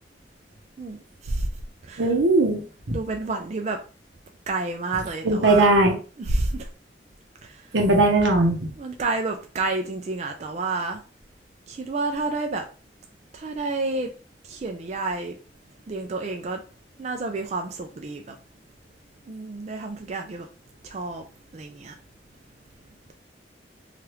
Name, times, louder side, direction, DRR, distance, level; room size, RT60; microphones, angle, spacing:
voice 1, 0.8-1.5 1.8-2.1 2.9-3.8 4.5-5.7 6.2-6.7 7.4-7.7 8.8-11.0 11.7-12.7 13.3-14.1 14.4-15.4 15.9-16.6 17.0-18.4 19.3-20.5 20.8-21.2 21.5-22.0, right 3 dB, 40° right, 0.3 m, -29 dB
voice 2, 2.0-2.6 5.2-5.9 7.7-8.7, right 2 dB, 85° right, 0.8 m, -19 dB
3.2 x 2.4 x 2.9 m
head